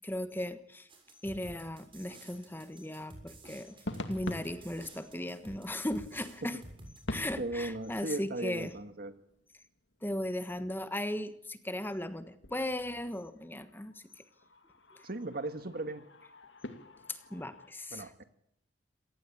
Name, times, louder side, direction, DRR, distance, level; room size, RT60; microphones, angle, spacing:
voice 1, 0.0-0.9 1.2-3.8 4.1-6.6 7.1-8.7 10.0-14.0 17.1-18.2, left 1 dB, 10° left, 11 dB, 1.3 m, -37 dB
sound 1, 0.9-7.2, right 1 dB, 30° right, 7.1 m, -51 dB
sound 2, 3.8-9.6 9.9-10.0 11.8-12.1 12.4-17.7, left 1 dB, 80° left, 2.4 m, -46 dB
voice 2, 7.4-9.1 15.0-16.0 17.9-18.2, right 2 dB, 55° right, 10 dB, 1.8 m, -37 dB
27.5 x 18.0 x 8.6 m, 0.73 s
head